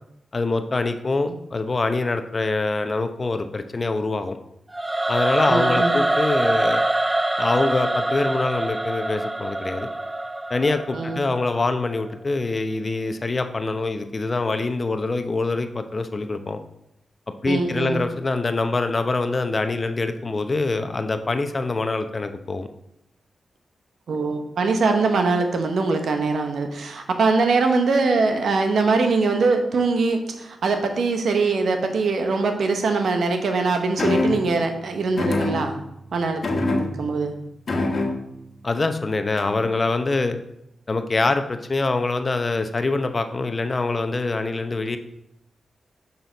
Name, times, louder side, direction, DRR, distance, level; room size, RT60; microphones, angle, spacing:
voice 1, 0.3-4.4 5.1-6.8 7.4-9.9 10.5-16.6 17.4-22.7 38.6-40.4 40.9-45.0, left 3 dB, 45° left, 8 dB, 0.7 m, -24 dB
Singing / Musical instrument, 4.7-11.8, right 1 dB, 20° right, 0.3 m, -24 dB
voice 2, 5.5-6.0 10.9-11.2 17.5-18.0 24.1-35.7 36.1-37.3, right 3 dB, 75° right, 5 dB, 0.9 m, -22 dB
sound 1, 34.0-34.6 35.2-36.0 36.4-37.2 37.7-38.5 39.4-39.7, left 2 dB, 60° left, 1.3 m, -25 dB
6.2 x 5.6 x 3.9 m, 0.81 s
supercardioid pair, 45°, 0 cm